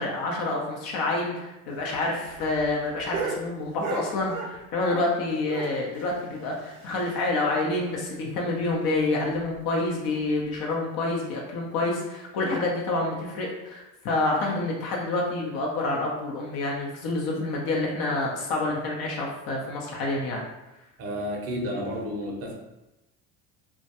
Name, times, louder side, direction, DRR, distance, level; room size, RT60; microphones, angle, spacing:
voice 1, 0.0-20.4, left 2 dB, 60° left, -2 dB, 0.7 m, -28 dB
sound 1, 1.7-5.1 5.4-7.4 7.7-7.8 8.1-8.2 8.6-8.7 9.3-9.6 10.4-10.5, right 5 dB, 90° right, 0.5 m, -36 dB
voice 2, 21.0-22.5, equal, 35° right, -1 dB, 0.6 m, -31 dB
2.2 x 2.2 x 2.8 m, 0.97 s
hypercardioid pair, 75°, 41 cm